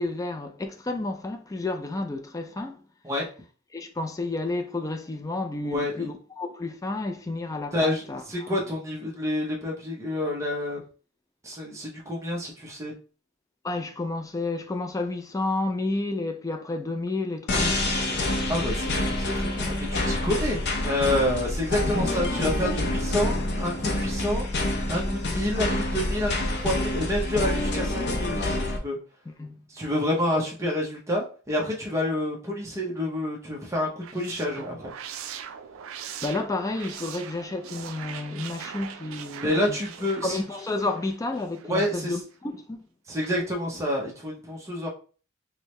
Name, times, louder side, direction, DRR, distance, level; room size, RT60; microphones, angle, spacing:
voice 1, 0.0-2.8 3.7-8.5 13.6-18.2 21.9-22.1 29.3-29.6 34.6-34.7 36.2-39.8 40.2-42.9, left 2 dB, 15° left, 0.3 m, -31 dB
voice 2, 5.6-6.1 7.7-10.8 11.4-13.0 18.5-24.5 24.9-29.0 29.7-34.9 39.4-40.4 41.6-42.2 43.1-44.9, left 1 dB, 15° right, 0.7 m, -28 dB
sound 1, 17.5-28.8, left 1 dB, 55° left, 0.6 m, -27 dB
sound 2, 33.8-41.9, right 8 dB, 80° right, 0.4 m, -41 dB
4.5 x 2.1 x 3.1 m
head